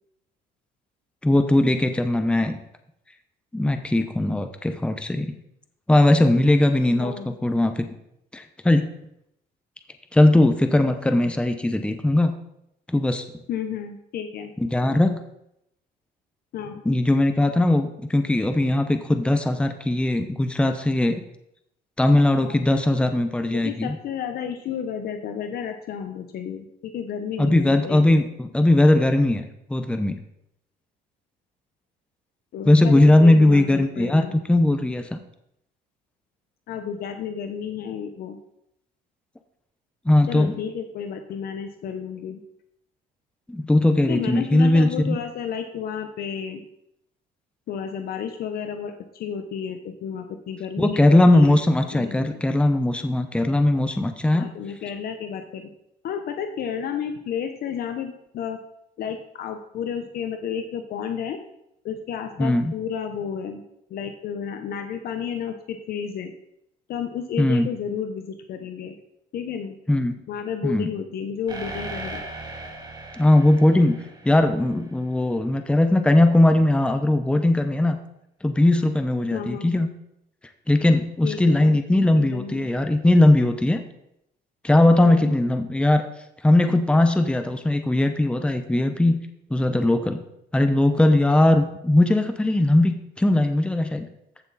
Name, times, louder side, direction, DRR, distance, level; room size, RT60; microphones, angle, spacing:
voice 1, 1.2-2.6 3.5-5.3 5.9-7.1 7.4-7.8 8.3-8.9 10.1-12.3 12.9-13.2 14.6-15.2 16.8-21.2 22.0-24.0 27.4-29.4 29.7-30.2 32.7-35.2 40.0-40.5 43.5-45.2 50.8-54.5 62.4-62.7 67.4-67.7 69.9-70.1 70.6-70.9 73.2-74.0 74.2-78.0 78.4-79.9 80.7-83.8 84.6-86.0 86.4-89.2 89.5-90.2 90.5-94.1, left 1 dB, 5° left, 7 dB, 0.8 m, -19 dB
voice 2, 7.0-7.3 13.5-14.5 16.5-16.8 22.4-22.6 23.5-28.2 32.5-34.4 36.7-38.4 40.3-42.4 44.1-46.6 47.7-51.6 51.9-52.4 54.3-55.7 56.0-58.6 59.0-61.4 61.8-63.6 63.9-66.3 66.9-69.0 69.3-69.8 70.3-72.2 79.3-79.7 81.2-81.8 82.1-82.6 85.0-85.3, left 7 dB, 65° left, 6 dB, 0.9 m, -32 dB
sound 1, 71.5-75.1, right 2 dB, 25° right, 2.3 m, -38 dB
14.5 x 6.2 x 4.2 m, 0.80 s
cardioid pair, 110°, 17 cm